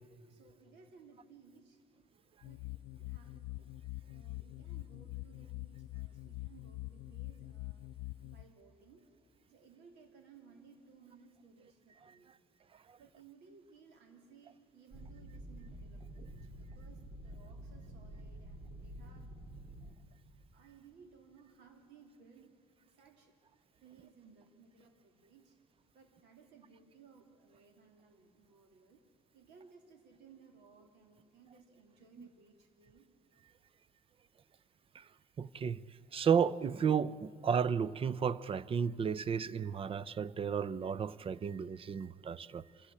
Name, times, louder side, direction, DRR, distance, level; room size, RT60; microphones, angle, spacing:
voice 1, 0.3-1.8 2.4-2.7 3.0-3.7 4.0-7.8 8.2-9.1 9.5-12.4 13.0-19.5 20.5-22.6 22.9-23.4 23.8-25.6 25.9-29.0 29.3-33.1, right 5 dB, 85° right, 3.2 m, -61 dB
sound 1, 2.4-8.4, left 17 dB, 85° left, 0.4 m, -45 dB
sound 2, 14.9-19.9, right 1 dB, 50° right, 2.5 m, -49 dB
voice 2, 35.4-35.8 36.1-42.6, right 7 dB, 35° right, 0.5 m, -33 dB
26.0 x 16.5 x 8.5 m
cardioid pair, 110°, 17 cm